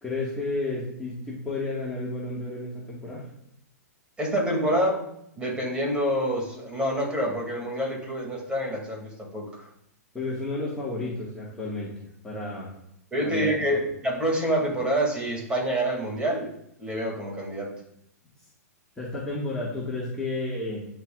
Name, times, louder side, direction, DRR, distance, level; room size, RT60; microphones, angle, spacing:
voice 1, 0.0-3.3 10.1-11.9 12.2-12.7 13.2-13.5 19.0-20.9, left 2 dB, 10° left, -7 dB, 2.0 m, -32 dB
voice 2, 4.2-5.1 5.4-9.5 13.1-16.5 16.8-17.7, right 1 dB, 10° right, -1 dB, 2.9 m, -27 dB
11.0 x 4.9 x 2.6 m, 0.75 s
figure-of-eight pair, 110°, 9 cm